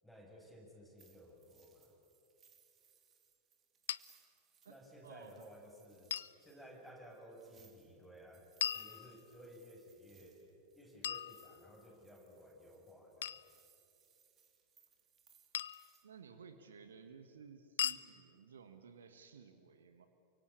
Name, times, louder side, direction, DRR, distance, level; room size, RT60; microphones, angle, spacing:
voice 1, 0.0-1.9 4.7-10.4 10.8-13.4, equal, ahead, -1 dB, 6.9 m, -56 dB
sound 1, 1.0-16.0, right 7 dB, 25° right, 3.5 m, -68 dB
sound 2, 3.9-4.0 6.1-6.4 8.6-9.5 11.0-11.9 13.2-13.5 15.5-15.9 17.8-18.1, left 10 dB, 60° left, 0.6 m, -39 dB
voice 2, 5.0-5.5 16.0-20.1, right 6 dB, 65° right, 8 dB, 1.6 m, -56 dB
28.5 x 24.5 x 8.4 m, 2.8 s
figure-of-eight pair, 90°, 0 cm